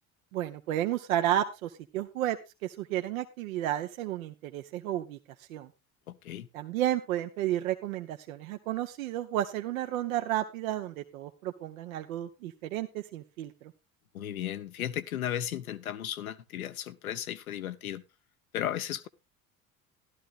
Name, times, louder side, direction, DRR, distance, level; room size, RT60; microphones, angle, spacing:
voice 1, 0.3-2.4 2.6-5.2 5.5-5.7 6.5-13.5, right 12 dB, 70° right, 7 dB, 1.0 m, -32 dB
voice 2, 6.1-6.5 14.1-18.0 18.5-19.1, left 11 dB, 80° left, 12 dB, 0.9 m, -35 dB
14.5 x 12.5 x 2.4 m, 0.25 s
figure-of-eight pair, 60°, 42 cm